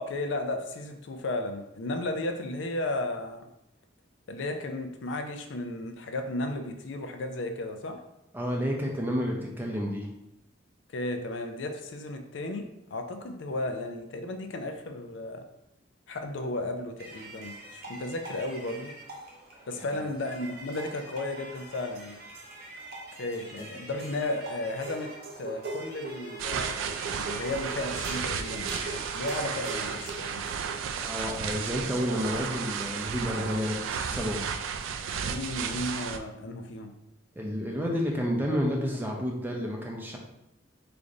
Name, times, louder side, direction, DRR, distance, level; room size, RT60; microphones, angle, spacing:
voice 1, 0.0-3.4 4.3-8.0 10.9-15.4 16.1-18.9 19.7-22.2 23.2-30.4 35.2-36.9, left 2 dB, 70° left, 5 dB, 0.4 m, -34 dB
voice 2, 8.3-10.1 31.0-34.5 37.4-40.2, equal, 10° right, -1 dB, 0.5 m, -30 dB
sound 1, 17.0-30.8, right 2 dB, 50° right, 0.9 m, -42 dB
sound 2, 26.4-36.2, right 7 dB, 80° right, 0.3 m, -33 dB
3.3 x 2.5 x 3.7 m, 0.85 s
head